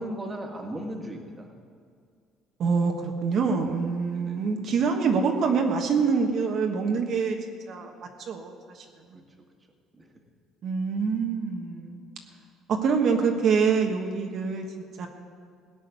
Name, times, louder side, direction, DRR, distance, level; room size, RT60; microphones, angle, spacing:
voice 1, 0.0-1.5 4.1-4.5 9.1-9.2 9.9-10.1, right 1 dB, 20° right, 2 dB, 2.0 m, -36 dB
voice 2, 2.6-7.4 7.7-7.9 8.3-8.8 9.1-9.2 10.6-12.0 12.7-14.7 15.0-15.1, right 5 dB, 55° right, 3 dB, 1.3 m, -25 dB
17.5 x 6.4 x 9.7 m, 2.1 s
cardioid pair, 120°, 0 cm